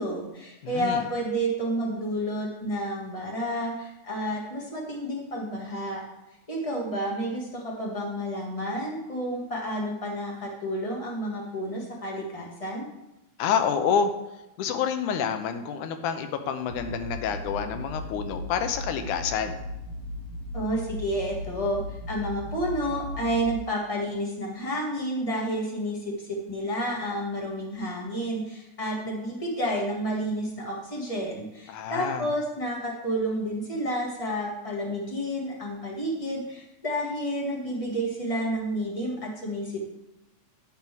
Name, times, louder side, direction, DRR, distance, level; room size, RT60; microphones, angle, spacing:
voice 1, 0.0-6.0 6.5-12.9 20.5-21.8 22.1-39.9, equal, 25° left, -2 dB, 0.8 m, -30 dB
voice 2, 0.6-1.0 13.4-14.1 14.6-19.6 31.7-32.3, left 7 dB, 85° left, 8 dB, 2.2 m, -28 dB
sound 1, 16.7-23.6, left 1 dB, 60° left, 3.0 m, -37 dB
9.9 x 4.0 x 7.3 m, 0.92 s
omnidirectional pair, 3.5 m